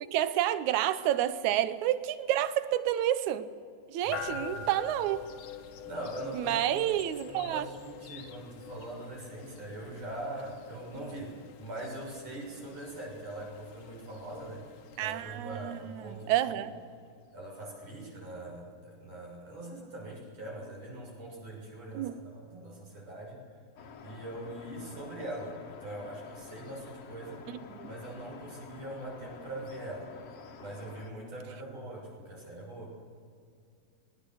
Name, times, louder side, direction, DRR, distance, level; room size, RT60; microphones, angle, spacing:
voice 1, 0.1-3.5 3.9-5.3 6.3-7.7 15.0-16.7 21.9-22.2 27.7-27.9, right 12 dB, 75° right, 2.2 m, -29 dB
voice 2, 4.0-4.7 5.8-6.8 7.3-14.7 15.0-16.7 17.3-23.4 24.0-27.4 27.8-30.1 30.6-33.0, right 1 dB, 55° right, 8.1 m, -42 dB
sound 1, 4.1-17.1, left 6 dB, 90° left, 2.8 m, -46 dB
sound 2, 23.8-31.1, left 6 dB, 60° left, 2.2 m, -49 dB
25.0 x 21.0 x 6.5 m
omnidirectional pair, 3.5 m